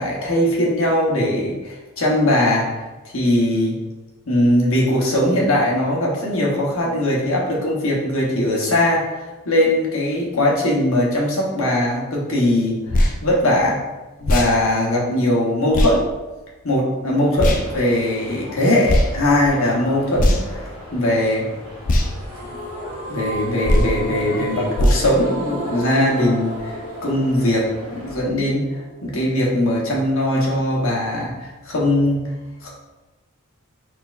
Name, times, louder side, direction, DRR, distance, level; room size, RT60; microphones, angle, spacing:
voice 1, 0.0-3.8 4.3-13.8 14.2-16.1 16.6-21.5 23.1-32.3 32.6-32.7, left 1 dB, 65° left, -4 dB, 1.1 m, -20 dB
sound 1, 12.9-13.2 14.2-14.5 15.7-15.9 17.4-17.6 18.8-19.1 20.1-20.6 21.8-22.1 23.6-23.9 24.7-25.1, left 1 dB, 40° left, 0.4 m, -18 dB
sound 2, 17.6-28.2, left 1 dB, 20° right, 1.3 m, -38 dB
sound 3, 22.3-29.3, right 1 dB, 40° right, 1.5 m, -33 dB
4.3 x 3.5 x 2.5 m, 1.1 s
head